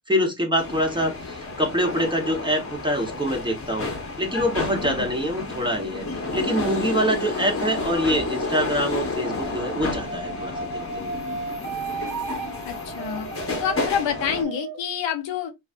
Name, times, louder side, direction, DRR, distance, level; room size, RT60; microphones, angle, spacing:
voice 1, 0.1-3.9 4.2-6.1 6.3-11.2, equal, 10° right, 1.4 m, -25 dB
sound 1, 0.6-14.4, left 3 dB, 30° left, 1.3 m, -31 dB
voice 2, 4.8-5.2 12.6-13.3 13.6-15.5, left 8 dB, 85° left, 0.9 m, -28 dB
sound 2, 9.3-14.8, right 4 dB, 50° right, 1.0 m, -34 dB
3.2 x 3.1 x 2.5 m
cardioid pair, 65°, 43 cm